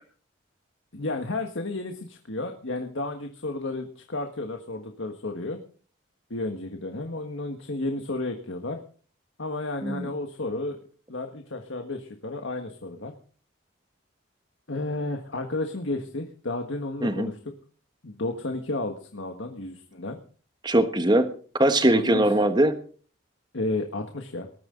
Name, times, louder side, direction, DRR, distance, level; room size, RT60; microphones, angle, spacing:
voice 1, 0.9-5.6 6.3-8.8 9.4-10.8 11.1-13.1 14.7-17.4 18.0-20.2 21.9-22.2 23.5-24.5, left 2 dB, 70° left, 4 dB, 1.6 m, -32 dB
voice 2, 20.6-21.3 21.6-22.7, right 1 dB, 20° right, 9 dB, 1.3 m, -21 dB
20.0 x 13.5 x 3.9 m, 0.42 s
head